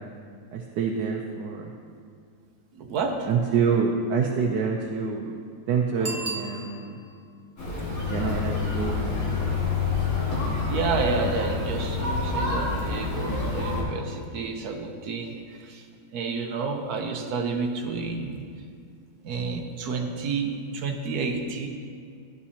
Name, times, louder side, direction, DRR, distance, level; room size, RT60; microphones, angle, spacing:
voice 1, 0.5-1.7 3.3-5.3 5.7-7.0 8.1-9.4, right 5 dB, 90° right, 0 dB, 1.3 m, -27 dB
voice 2, 2.7-3.3 6.0-6.1 10.7-15.8 16.1-18.4 19.2-21.7, right 4 dB, 70° right, 2 dB, 1.4 m, -30 dB
Bicycle bell, 6.0-7.2 12.6-12.7, right 3 dB, 35° right, 0.7 m, -35 dB
sound 1, 7.6-13.8, left 4 dB, 55° left, 2.3 m, -27 dB
13.0 x 9.4 x 2.8 m, 2.3 s
omnidirectional pair, 1.8 m